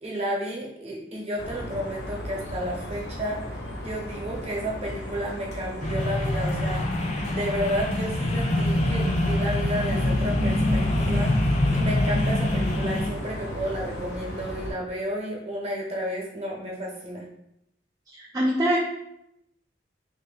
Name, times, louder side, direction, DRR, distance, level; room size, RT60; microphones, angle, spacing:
voice 1, 0.0-3.5 3.8-6.8 7.2-11.3 11.7-17.2, equal, 35° right, -3 dB, 1.0 m, -31 dB
sound 1, 1.4-14.7, equal, 80° left, 0.8 m, -36 dB
sound 2, 5.8-13.1, left 1 dB, 40° left, 0.6 m, -24 dB
voice 2, 18.1-18.8, equal, 20° right, -2 dB, 0.3 m, -24 dB
3.1 x 2.7 x 3.9 m, 0.80 s
head